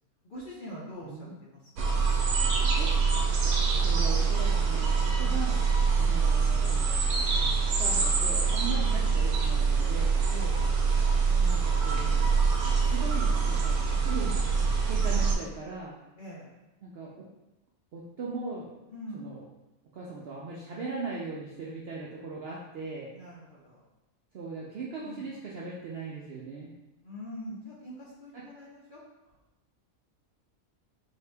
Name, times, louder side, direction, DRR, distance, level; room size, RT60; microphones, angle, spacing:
voice 1, 0.2-1.9 5.2-5.4 8.7-8.8 10.3-10.7 13.9-14.1 16.2-16.5 18.9-19.2 23.1-23.8 25.0-25.3 27.0-29.0, equal, 50° left, -6 dB, 0.7 m, -43 dB
voice 2, 1.0-1.4 2.8-2.9 3.8-5.6 6.0-6.9 7.8-10.1 11.4-12.2 12.9-14.3 14.9-16.0 16.8-17.3 17.9-18.7 19.1-19.4 19.9-23.1 24.3-26.7 28.3-28.4, right 4 dB, 65° right, -4 dB, 0.6 m, -39 dB
sound 1, 1.8-15.3, right 5 dB, 85° right, 1.1 m, -25 dB
4.2 x 2.7 x 3.3 m, 0.99 s
omnidirectional pair, 1.5 m